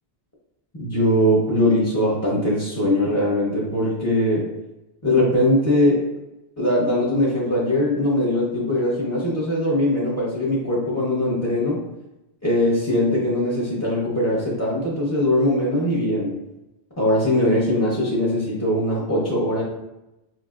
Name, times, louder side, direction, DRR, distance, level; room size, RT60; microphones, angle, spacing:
voice 1, 0.8-4.4 5.0-6.1 6.6-11.8 12.4-16.4 17.0-19.6, left 1 dB, 15° left, -7 dB, 0.7 m, -21 dB
4.7 x 2.6 x 2.4 m, 0.95 s
omnidirectional pair, 1.1 m